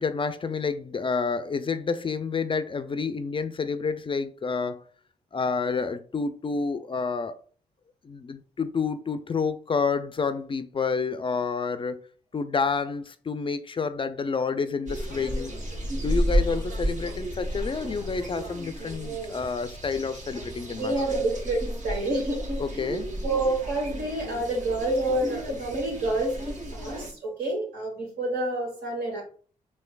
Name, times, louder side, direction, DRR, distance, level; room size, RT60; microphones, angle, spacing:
voice 1, 0.0-4.9 5.3-7.4 8.0-12.0 12.3-15.5 15.9-20.9 22.6-23.1, left 5 dB, 30° left, 0.3 m, -29 dB
sound 1, 14.9-27.1, equal, 50° right, 1.1 m, -32 dB
voice 2, 20.8-22.8 23.2-29.2, right 2 dB, 75° right, 1.2 m, -28 dB
3.2 x 3.1 x 2.3 m
hypercardioid pair, 40°, 17 cm